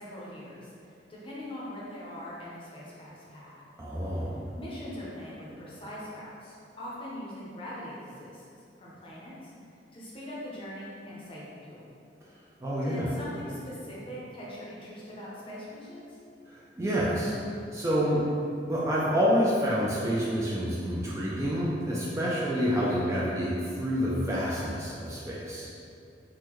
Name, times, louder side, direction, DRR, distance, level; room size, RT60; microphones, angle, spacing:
voice 1, 0.0-3.6 4.5-8.4 8.8-9.5 9.9-11.8 12.8-16.2, left 1 dB, 30° left, -6 dB, 0.6 m, -42 dB
voice 2, 3.8-4.5 12.6-13.1 16.5-17.4 17.7-18.2 18.7-25.7, equal, 15° right, -7 dB, 0.3 m, -28 dB
3.6 x 2.1 x 3.0 m, 2.5 s
head